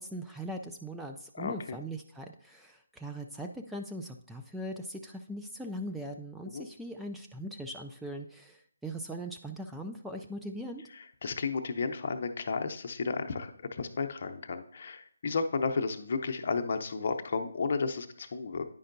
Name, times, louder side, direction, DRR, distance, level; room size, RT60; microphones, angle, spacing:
voice 1, 0.0-10.8, right 1 dB, 5° right, 2 dB, 0.3 m, -40 dB
voice 2, 1.4-1.8 6.5-6.7 11.2-18.7, left 4 dB, 50° left, 6 dB, 0.7 m, -33 dB
9.8 x 5.3 x 2.6 m, 0.62 s
figure-of-eight pair, 155°, 0 cm